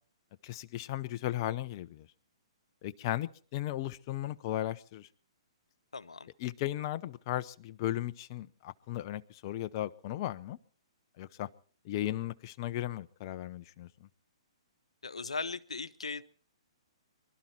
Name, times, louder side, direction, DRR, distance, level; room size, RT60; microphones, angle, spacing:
voice 1, 0.4-2.1 2.8-5.1 6.4-10.6 11.2-11.5 11.8-13.9, left 14 dB, 40° left, 0.9 m, -36 dB
voice 2, 5.9-6.3 15.0-16.2, left 4 dB, 85° left, 1.0 m, -38 dB
24.0 x 12.5 x 4.5 m
hypercardioid pair, 130°, 3 cm